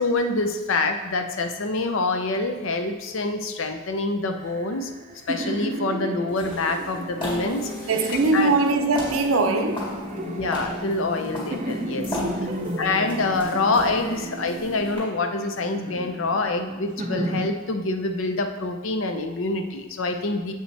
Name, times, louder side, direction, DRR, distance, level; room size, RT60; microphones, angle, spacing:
voice 1, 0.0-4.9 5.3-7.7 8.3-8.5 10.2-12.2 12.8-20.5, left 3 dB, 70° left, 6 dB, 0.6 m, -26 dB
sound 1, 4.4-8.7 9.3-11.2 11.5-14.9 15.4-17.5, right 1 dB, 35° right, 0.6 m, -35 dB
sound 2, 6.3-15.0, left 1 dB, 25° left, 2.1 m, -37 dB
sound 3, 7.2-15.0, equal, 40° left, 2.0 m, -36 dB
voice 2, 7.9-10.1 12.1-12.8, right 3 dB, 90° right, 6 dB, 0.6 m, -23 dB
7.5 x 5.4 x 3.3 m, 1.2 s
head